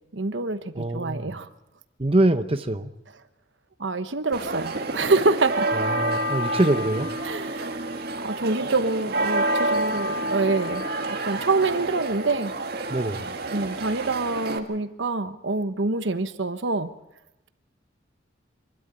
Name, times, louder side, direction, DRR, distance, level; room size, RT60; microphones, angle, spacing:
voice 1, 0.1-1.5 3.8-5.7 7.2-7.8 8.2-12.5 13.5-16.9, right 3 dB, 75° right, 10 dB, 1.1 m, -26 dB
voice 2, 0.7-1.3 2.0-2.9 5.7-7.1 12.9-13.4, right 1 dB, 30° right, 8 dB, 0.8 m, -24 dB
sound 1, 4.3-14.6, right 1 dB, 55° right, 2.0 m, -28 dB
25.5 x 12.5 x 8.9 m, 0.92 s
head